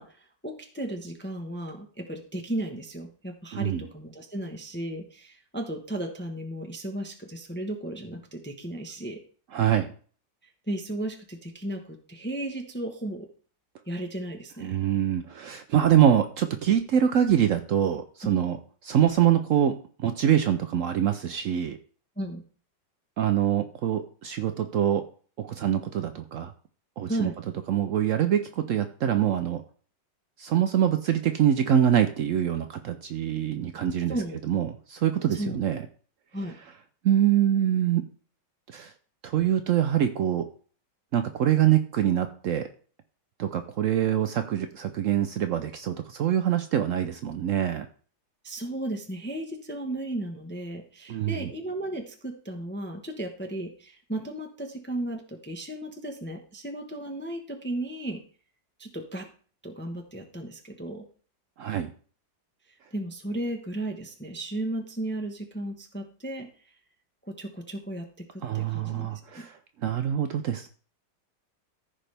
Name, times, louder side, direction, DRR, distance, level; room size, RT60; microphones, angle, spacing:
voice 1, 0.0-9.2 10.7-13.3 13.9-14.8 22.2-22.4 27.1-27.4 34.1-34.4 35.4-35.6 36.3-36.6 48.4-58.2 58.8-59.3 59.6-61.1 62.9-66.5 67.2-69.5, right 1 dB, 10° left, 3 dB, 0.7 m, -35 dB
voice 2, 3.5-3.8 9.5-9.9 14.6-18.6 18.8-21.8 23.2-25.0 25.4-26.5 27.0-27.3 27.7-29.6 30.4-34.2 34.5-35.8 37.0-38.0 38.7-38.9 39.2-40.5 41.1-42.7 43.4-47.9 51.1-51.5 61.6-61.9 68.4-70.7, right 10 dB, 85° right, 8 dB, 0.7 m, -24 dB
14.5 x 5.1 x 3.4 m, 0.42 s
omnidirectional pair, 2.0 m